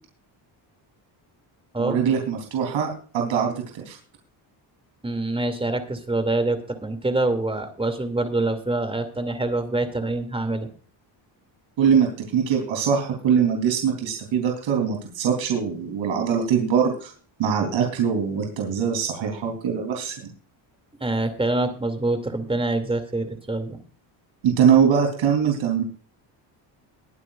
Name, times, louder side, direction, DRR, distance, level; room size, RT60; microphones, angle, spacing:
voice 1, 1.8-4.0 11.8-17.1 17.4-20.1 24.4-25.8, right 7 dB, 75° right, 2 dB, 3.6 m, -22 dB
voice 2, 5.0-10.7 21.0-23.8, right 2 dB, 10° right, 8 dB, 2.5 m, -25 dB
22.0 x 9.7 x 2.5 m, 0.40 s
cardioid pair, 115°, 46 cm